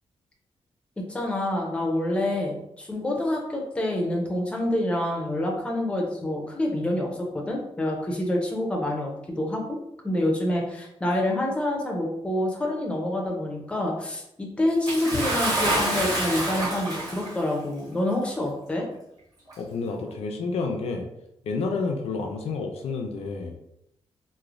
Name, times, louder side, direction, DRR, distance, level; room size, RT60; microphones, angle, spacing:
voice 1, 1.0-9.8 10.0-18.9, left 1 dB, 10° left, 0 dB, 0.5 m, -27 dB
Bathtub (filling or washing) / Splash splatter, 14.9-17.5 18.4-18.5 19.5-19.6, right 1 dB, 35° right, 1.1 m, -27 dB
voice 2, 19.6-21.1 21.4-23.6, left 4 dB, 70° left, 2 dB, 0.4 m, -29 dB
3.0 x 2.0 x 2.4 m, 0.79 s
wide cardioid pair, 150°, 11 cm